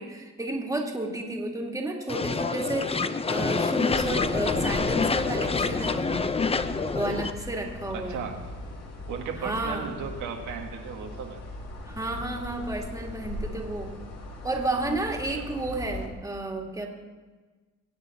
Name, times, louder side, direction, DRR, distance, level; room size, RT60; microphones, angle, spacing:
voice 1, 0.0-6.3 6.9-8.3 9.4-9.9 11.8-13.9 14.4-16.9, right 2 dB, 10° right, 1 dB, 2.1 m, -32 dB
sound 1, 2.1-7.3, left 4 dB, 20° left, 0.6 m, -27 dB
sound 2, 3.9-16.1, left 1 dB, 55° left, 2.2 m, -39 dB
voice 2, 7.9-8.4 9.1-11.4 15.3-15.6, right 6 dB, 85° right, 1 dB, 1.7 m, -36 dB
22.0 x 8.1 x 4.1 m, 1.3 s
cardioid pair, 90°, 30 cm